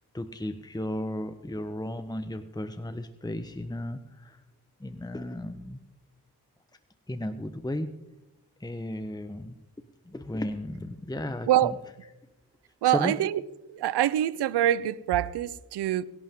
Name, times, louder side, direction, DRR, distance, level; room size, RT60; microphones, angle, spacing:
voice 1, 0.0-4.4 4.8-5.8 7.1-7.9 8.6-9.6 10.0-11.8 12.8-13.1, left 1 dB, 10° left, 1.1 m, -34 dB
voice 2, 12.8-13.4 13.7-16.0, right 12 dB, 85° right, 0.7 m, -25 dB
22.5 x 11.5 x 3.8 m
supercardioid pair, 45°, 39 cm